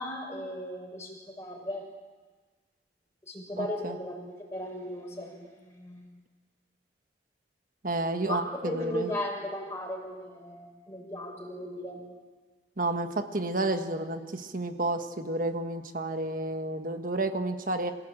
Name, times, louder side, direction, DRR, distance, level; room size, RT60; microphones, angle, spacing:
voice 1, 0.0-1.9 3.2-4.2 4.5-6.1 8.2-12.0, left 1 dB, 15° left, -2 dB, 6.5 m, -36 dB
voice 2, 3.6-4.0 7.8-9.1 12.8-17.9, right 2 dB, 50° right, 6 dB, 1.4 m, -31 dB
27.0 x 16.5 x 8.8 m, 1.4 s
head